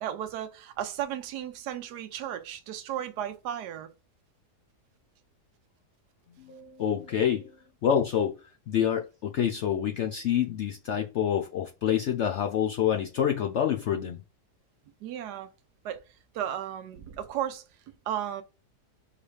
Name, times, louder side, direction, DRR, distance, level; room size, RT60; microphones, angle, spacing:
voice 1, 0.0-3.9 15.0-15.5 15.8-16.0 16.3-17.6 18.1-18.4, right 10 dB, 85° right, 1.2 m, -34 dB
voice 2, 6.5-7.5 7.8-8.3 8.7-14.2, left 9 dB, 75° left, 0.6 m, -27 dB
4.8 x 3.2 x 3.2 m
omnidirectional pair, 1.7 m